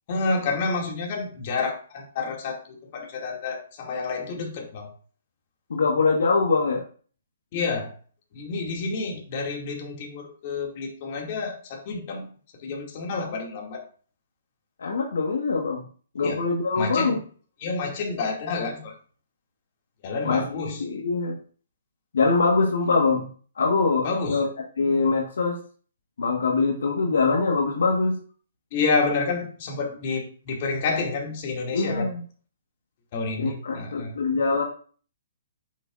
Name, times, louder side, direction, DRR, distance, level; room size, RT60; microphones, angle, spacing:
voice 1, 0.1-4.9 7.5-7.9 8.3-12.3 12.6-13.8 16.2-16.4 16.8-17.2 17.6-18.9 20.0-20.8 24.0-24.4 28.7-32.1 33.1-34.1, left 4 dB, 45° left, 1 dB, 2.2 m, -29 dB
voice 2, 5.7-6.8 14.8-15.8 16.1-17.2 20.2-21.4 22.1-23.3 23.6-24.5 24.8-25.6 26.2-28.2 31.7-32.2 33.4-34.6, left 4 dB, 75° left, 1 dB, 1.3 m, -23 dB
7.9 x 6.5 x 2.5 m, 0.42 s
hypercardioid pair, 135°, 0 cm